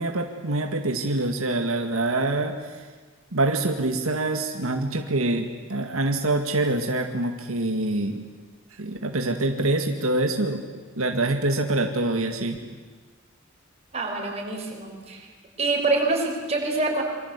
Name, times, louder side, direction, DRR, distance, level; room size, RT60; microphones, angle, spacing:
voice 1, 0.0-2.5 3.3-8.2 8.8-10.7 11.0-12.7, right 2 dB, 85° right, 4 dB, 2.1 m, -25 dB
voice 2, 13.9-15.3 15.6-17.0, right 3 dB, 30° right, 0 dB, 5.8 m, -26 dB
27.5 x 25.0 x 8.3 m, 1.4 s
head